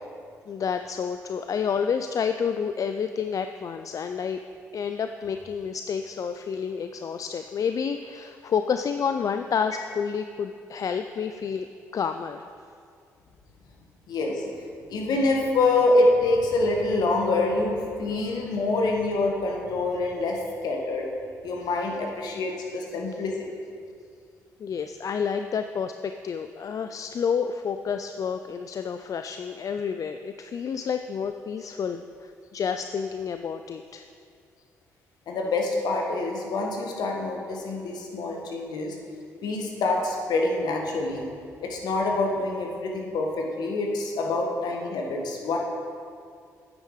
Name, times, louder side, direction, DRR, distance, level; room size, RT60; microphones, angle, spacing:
voice 1, 0.5-4.4 4.7-12.5 24.6-34.0, left 6 dB, 50° left, 8 dB, 0.4 m, -29 dB
voice 2, 14.1-14.5 14.9-21.0 21.4-23.4 35.3-39.0 39.4-41.3 41.6-45.6, left 2 dB, 70° left, 0 dB, 1.6 m, -26 dB
9.0 x 8.9 x 4.8 m, 2.3 s
hypercardioid pair, 50°, 7 cm